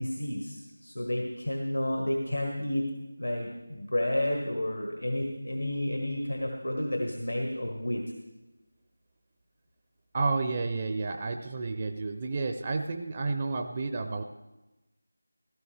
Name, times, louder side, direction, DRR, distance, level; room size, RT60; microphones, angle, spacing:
voice 1, 0.0-2.9 3.2-8.0, left 1 dB, 80° left, 1 dB, 1.5 m, -31 dB
voice 2, 10.1-14.2, right 3 dB, 25° right, 6 dB, 0.5 m, -31 dB
16.0 x 13.0 x 3.4 m, 1.0 s
figure-of-eight pair, 165°, 0 cm